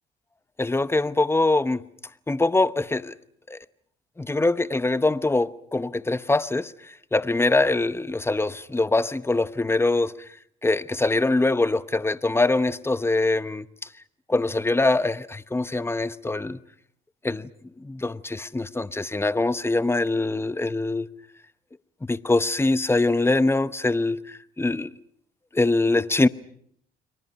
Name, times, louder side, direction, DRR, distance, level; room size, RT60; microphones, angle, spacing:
voice 1, 0.6-1.8 2.3-3.2 3.5-3.6 4.2-10.1 10.6-13.7 14.3-16.6 17.2-17.5 17.8-21.1 22.1-24.9 25.5-26.3, left 2 dB, 10° left, 0.9 m, -23 dB
30.0 x 23.5 x 5.7 m
cardioid pair, 90°, 20 cm